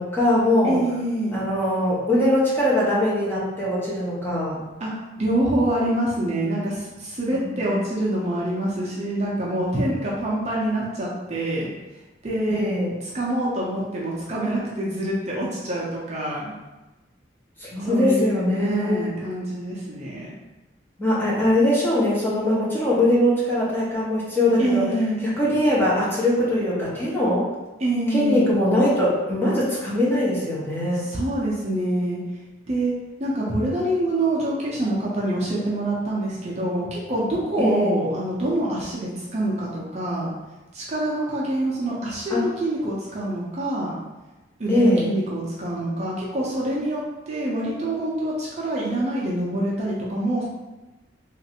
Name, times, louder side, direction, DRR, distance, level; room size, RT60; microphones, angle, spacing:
voice 1, 0.0-0.8 1.3-4.6 7.3-7.8 12.5-12.9 17.6-19.1 21.0-24.9 25.2-27.5 28.1-31.1 37.6-37.9 42.3-42.4 44.7-45.1, left 1 dB, 10° left, -8 dB, 0.8 m, -21 dB
voice 2, 0.6-1.4 4.8-11.7 12.2-12.6 13.1-16.5 17.8-20.3 24.6-25.2 27.8-28.5 31.1-32.2 32.7-32.9 33.2-40.3 40.7-44.0 44.6-50.4, right 1 dB, 35° right, -5 dB, 0.5 m, -25 dB
3.1 x 2.5 x 2.8 m, 1.1 s
head